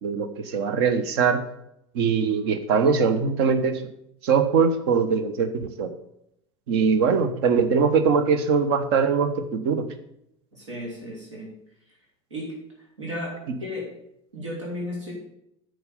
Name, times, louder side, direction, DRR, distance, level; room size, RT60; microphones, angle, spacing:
voice 1, 0.0-1.4 1.9-3.8 4.2-5.9 6.7-9.9 13.5-13.6, right 5 dB, 55° right, 10 dB, 1.2 m, -22 dB
voice 2, 10.5-11.5 12.3-12.5 13.0-13.3 13.6-13.8 14.3-15.1, left 1 dB, 75° right, -3 dB, 3.6 m, -33 dB
9.3 x 6.4 x 6.9 m, 0.78 s
figure-of-eight pair, 75°, 16 cm